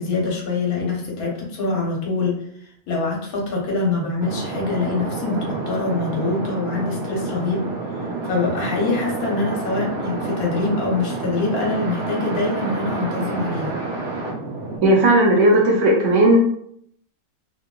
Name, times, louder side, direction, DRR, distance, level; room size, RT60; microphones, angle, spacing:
voice 1, 0.0-2.4 2.9-7.7 8.2-13.8, left 3 dB, 80° left, -2 dB, 1.3 m, -24 dB
sound 1, 4.2-14.8, right 3 dB, 85° right, 1.2 m, -29 dB
voice 2, 14.8-16.4, right 1 dB, 65° right, -2 dB, 0.9 m, -15 dB
2.9 x 2.3 x 2.2 m, 0.66 s
omnidirectional pair, 1.5 m